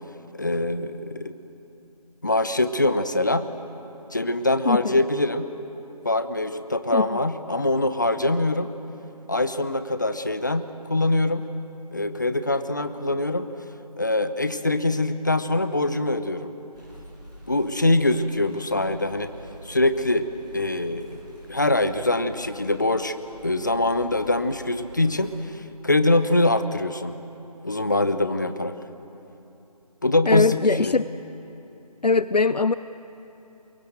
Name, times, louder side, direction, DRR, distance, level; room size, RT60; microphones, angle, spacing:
voice 1, 0.3-1.4 2.2-3.5 4.1-5.5 6.0-8.7 9.3-11.4 11.9-13.5 14.0-16.5 17.5-19.3 19.6-20.3 20.5-21.2 21.5-23.2 23.4-27.1 27.6-28.7 30.0-30.9, left 2 dB, 30° left, 11 dB, 0.8 m, -23 dB
voice 2, 4.7-5.0 6.9-7.1 30.3-31.1 32.0-32.7, left 4 dB, 80° left, 14 dB, 0.7 m, -21 dB
sound 1, 16.7-25.3, equal, 10° right, 7.0 m, -46 dB
24.5 x 23.0 x 7.8 m, 3.0 s
figure-of-eight pair, 170°, 20 cm